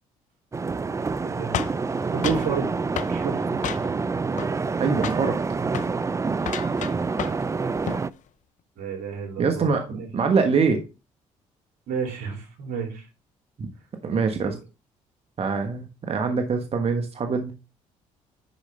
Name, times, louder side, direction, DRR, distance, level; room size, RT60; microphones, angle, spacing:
sound 1, 0.5-8.1, right 4 dB, 20° right, 0.4 m, -27 dB
voice 1, 1.2-1.5 2.1-2.7 3.1-3.6 8.8-10.1 11.9-13.0 14.4-14.6, right 6 dB, 75° right, 2 dB, 2.9 m, -31 dB
sound 2, 1.5-2.5 3.0-3.2 3.6-4.1 4.4-4.8 5.0-5.3 5.7-5.9 6.4-7.5 7.7-8.1, left 10 dB, 60° left, 0.7 m, -32 dB
voice 2, 4.8-5.6 6.9-7.0 9.4-10.8 13.6-13.7 14.0-14.6 15.4-17.5, right 5 dB, 45° right, 5 dB, 1.3 m, -24 dB
10.5 x 4.9 x 3.3 m, 0.30 s
supercardioid pair, 65°, 15 cm